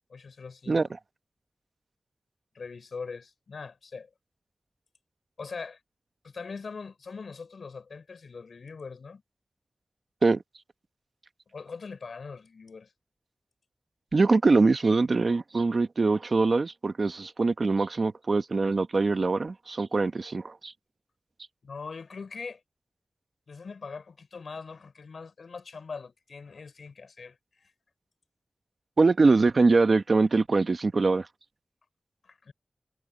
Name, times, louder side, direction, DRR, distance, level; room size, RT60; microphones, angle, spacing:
voice 1, 0.1-0.8 2.5-4.1 5.4-5.8 6.2-9.2 11.5-12.9 21.6-22.6 23.5-27.7 32.2-32.5, left 5 dB, 85° left, 4.9 m, -41 dB
voice 2, 14.1-20.7 29.0-31.3, right 3 dB, 60° right, 1.2 m, -23 dB
wide cardioid pair, 70°, 0 cm